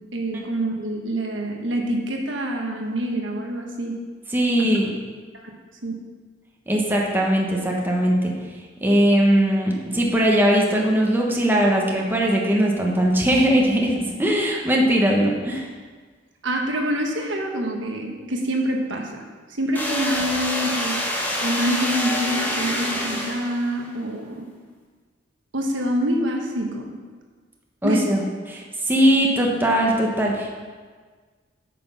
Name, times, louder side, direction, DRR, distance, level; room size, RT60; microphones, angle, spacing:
voice 1, 0.0-4.0 4.6-4.7 5.4-5.5 5.8-6.0 16.4-19.2 19.5-21.0 21.4-24.5 25.5-26.9 27.8-28.1, equal, 80° right, 2 dB, 1.3 m, -26 dB
voice 2, 4.3-4.9 6.7-8.3 8.8-15.7 27.8-28.2 28.5-30.6, right 1 dB, 10° right, -2 dB, 1.2 m, -20 dB
sound 1, 19.7-23.8, equal, 10° left, 1.3 m, -26 dB
8.7 x 6.1 x 5.7 m, 1.5 s
head